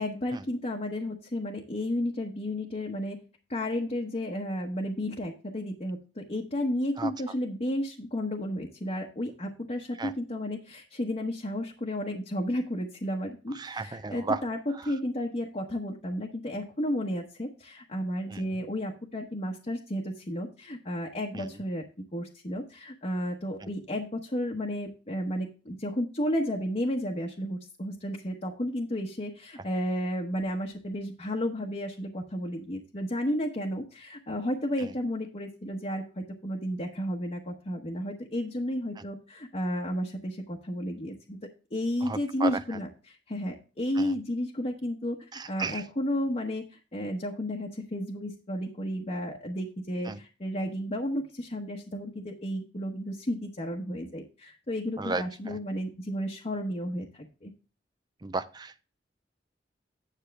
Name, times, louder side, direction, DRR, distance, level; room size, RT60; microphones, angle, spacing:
voice 1, 0.0-3.2 3.5-14.6 14.8-41.4 41.7-57.5, left 1 dB, 35° left, -1 dB, 1.1 m, -32 dB
voice 2, 13.5-14.4 14.7-14.9 18.3-18.5 21.3-21.6 34.8-34.9 39.0-39.1 42.0-42.6 44.0-44.1 45.3-45.8 50.0-50.2 55.0-55.6 58.2-58.8, right 3 dB, 25° right, 11 dB, 0.4 m, -34 dB
10.0 x 6.4 x 3.4 m, 0.34 s
head